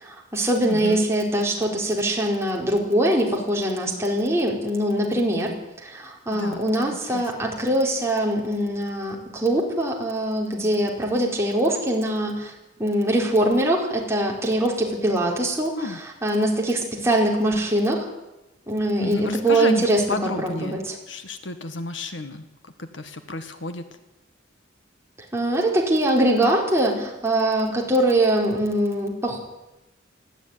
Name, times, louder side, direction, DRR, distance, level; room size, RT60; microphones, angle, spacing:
voice 1, 0.0-5.5 5.8-12.5 12.8-15.9 16.2-18.1 18.7-21.0 25.3-29.4, right 1 dB, 15° right, -1 dB, 4.4 m, -23 dB
voice 2, 0.7-1.0 6.3-6.7 7.1-7.3 15.8-16.0 19.0-20.8 21.1-23.9, left 2 dB, 65° left, 9 dB, 1.8 m, -31 dB
20.0 x 15.0 x 9.8 m, 1.0 s
head